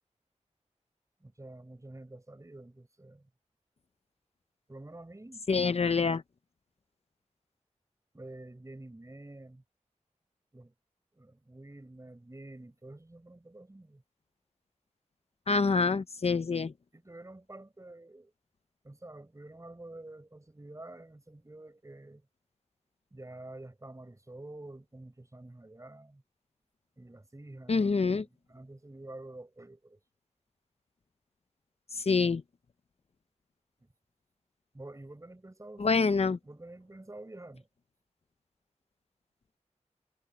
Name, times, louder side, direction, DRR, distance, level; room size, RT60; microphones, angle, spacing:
voice 1, 1.2-3.3 4.7-5.5 8.1-9.6 10.5-10.7 11.1-14.0 16.6-18.3 18.8-22.3 23.1-26.2 27.0-30.0 33.8-33.9 34.7-35.9 36.4-37.7, right 2 dB, 25° right, 5.7 m, -48 dB
voice 2, 5.5-6.2 15.5-16.7 27.7-28.2 31.9-32.4 35.8-36.4, left 4 dB, 55° left, 0.7 m, -26 dB
wide cardioid pair, 80°, 13 cm